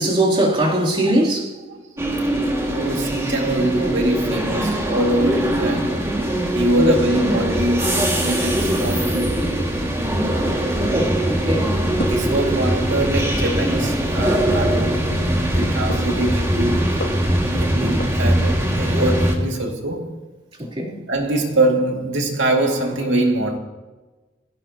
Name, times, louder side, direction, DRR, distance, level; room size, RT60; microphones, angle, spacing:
voice 1, 0.0-1.6 6.7-7.0 10.8-11.8 20.6-21.0, right 1 dB, 30° right, 3.2 m, -21 dB
sound 1, 2.0-19.3, right 1 dB, 15° right, 2.1 m, -21 dB
voice 2, 2.7-6.1 6.5-9.5 12.0-17.0 17.5-20.1 21.1-23.6, right 1 dB, 70° right, 2.3 m, -23 dB
sound 2, 11.5-18.3, left 1 dB, 85° left, 2.7 m, -37 dB
25.5 x 16.5 x 3.0 m
head